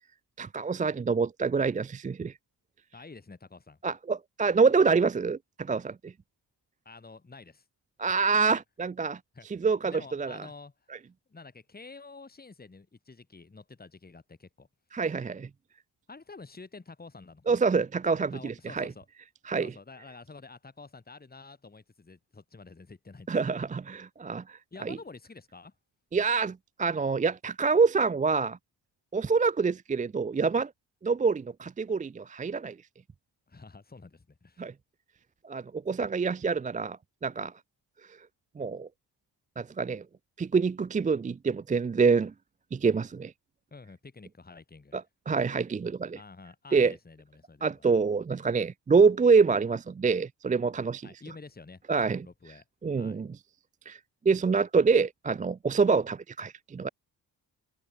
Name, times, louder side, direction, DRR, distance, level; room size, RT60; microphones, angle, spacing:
voice 1, 0.4-2.3 3.8-6.1 8.0-9.2 9.5-10.4 14.9-15.5 17.5-18.9 19.5-19.7 23.3-25.0 26.1-28.6 29.1-30.7 31.0-32.8 34.6-34.7 35.4-37.5 38.6-38.9 39.6-40.0 40.4-42.3 42.7-43.3 44.9-46.2 46.7-46.9 47.6-51.1 51.9-52.3 52.8-53.3 53.9-54.0 54.3-56.9, right 5 dB, 20° right, 0.3 m, -26 dB
voice 2, 2.9-3.8 6.9-7.6 8.0-8.1 9.3-9.5 9.8-10.7 11.3-14.7 16.1-17.6 18.1-19.1 19.6-23.3 23.6-23.7 24.7-25.7 33.5-34.7 43.7-45.0 46.2-47.9 51.0-51.8 52.2-52.6 53.0-53.2, left 4 dB, 20° left, 2.2 m, -49 dB
wide cardioid pair, 115°, 43 cm